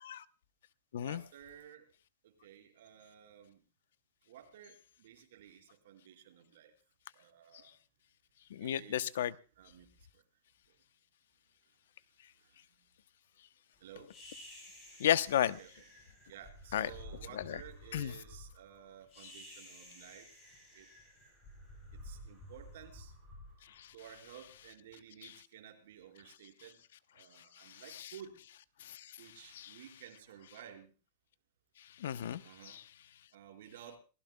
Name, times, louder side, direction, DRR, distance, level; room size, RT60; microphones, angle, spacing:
voice 1, 1.0-1.8 2.2-3.6 4.3-6.7 7.1-7.7 8.6-9.0 9.6-9.9 10.1-10.2 13.8-14.1 15.4-20.3 20.7-20.9 22.0-23.1 23.9-26.8 27.1-28.4 29.2-30.9 32.4-32.8 33.3-34.0, right 9 dB, 65° right, 4.4 m, -54 dB
voice 2, 8.5-9.3 15.0-15.6 16.7-16.9 17.5-17.6 17.9-18.1 23.8-23.9 27.7-27.8 28.8-29.1 29.6-29.7 32.0-32.4 32.7-32.8, left 10 dB, 75° left, 0.8 m, -32 dB
sound 1, 14.1-24.4, left 1 dB, 20° left, 7.7 m, -53 dB
28.0 x 16.0 x 2.2 m
supercardioid pair, 180°, 0 cm